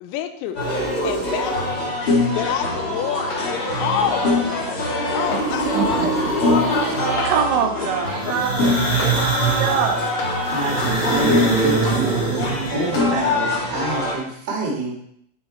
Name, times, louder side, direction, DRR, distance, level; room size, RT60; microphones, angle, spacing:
voice 1, 0.0-1.8 2.3-3.5 3.8-4.8 5.1-7.3, left 10 dB, 85° left, 8 dB, 2.6 m, -29 dB
sound 1, 0.5-14.1, left 2 dB, 35° left, 2.1 m, -24 dB
sound 2, 0.6-1.8 3.6-4.5 4.8-7.4 8.2-13.0, right 4 dB, 5° right, 0.6 m, -25 dB
sound 3, 3.3-4.0 4.4-4.5 5.3-5.9 7.2-7.8 9.0-9.6 9.8-10.7 11.1-11.6 12.6-13.5, left 2 dB, 50° left, 3.2 m, -38 dB
voice 2, 5.7-6.1 7.2-10.1, right 7 dB, 75° right, 4 dB, 2.5 m, -24 dB
voice 3, 10.5-12.3 12.7-14.9, right 1 dB, 45° right, -3 dB, 1.4 m, -27 dB
12.0 x 4.6 x 4.4 m, 0.70 s
omnidirectional pair, 5.7 m